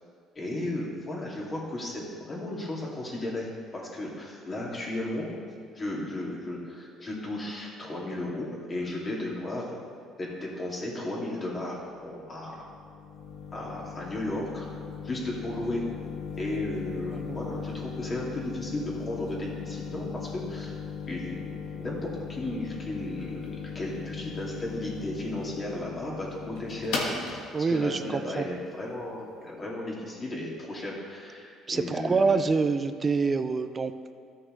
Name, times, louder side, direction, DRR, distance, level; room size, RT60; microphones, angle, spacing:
voice 1, 0.4-3.5 3.7-5.4 5.7-9.9 10.2-12.6 13.5-14.7 15.0-15.8 16.4-20.8 21.1-27.4 27.7-32.4, left 1 dB, 30° left, -4 dB, 2.4 m, -35 dB
sound 1, 11.8-29.5, left 5 dB, 85° left, 1.5 m, -38 dB
voice 2, 27.5-28.5 31.7-34.1, right 4 dB, 30° right, 11 dB, 0.5 m, -26 dB
14.0 x 6.4 x 3.2 m, 2.1 s
cardioid pair, 105°, 0 cm